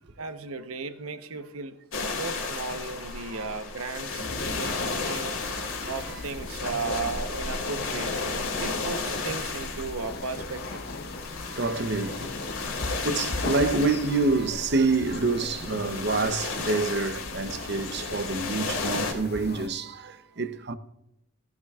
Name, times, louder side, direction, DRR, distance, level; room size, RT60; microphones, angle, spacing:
voice 1, 0.2-1.8 2.0-5.4 5.9-8.1 8.6-10.8, right 4 dB, 85° right, 1.0 m, -35 dB
sound 1, 1.9-19.1, left 3 dB, 70° left, 2.5 m, -33 dB
sound 2, 4.3-19.7, left 2 dB, 45° left, 0.7 m, -39 dB
sound 3, 4.4-8.8, right 1 dB, 25° right, 1.3 m, -49 dB
voice 2, 5.8-6.2 11.4-20.8, right 3 dB, 50° right, 0.8 m, -28 dB
19.0 x 12.0 x 2.4 m
head